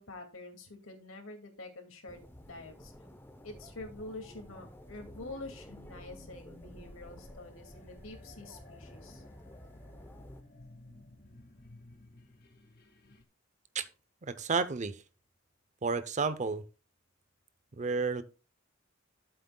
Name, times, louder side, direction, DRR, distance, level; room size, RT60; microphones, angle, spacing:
voice 1, 0.0-2.9 3.4-9.2, left 2 dB, 80° left, 2.3 m, -47 dB
sound 1, 2.1-10.4, equal, 10° left, 0.7 m, -52 dB
sound 2, 4.8-13.2, left 1 dB, 50° left, 1.5 m, -56 dB
voice 2, 14.2-15.0 15.8-16.6 17.7-18.2, right 4 dB, 35° right, 0.6 m, -31 dB
13.0 x 7.8 x 2.3 m
head